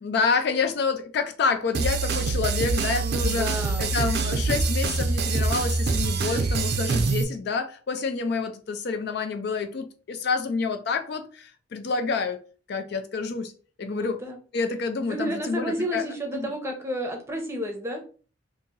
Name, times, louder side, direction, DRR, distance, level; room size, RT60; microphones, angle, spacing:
voice 1, 0.0-3.5 3.8-12.4 12.7-13.5 13.8-14.2 14.5-16.0 16.3-16.5, left 4 dB, 55° left, 0.4 m, -28 dB
sound 1, 1.7-7.2, right 3 dB, 55° right, 0.5 m, -25 dB
voice 2, 3.0-3.9 13.8-14.4 15.1-18.0, equal, 15° right, 0.7 m, -31 dB
2.8 x 2.6 x 3.8 m
head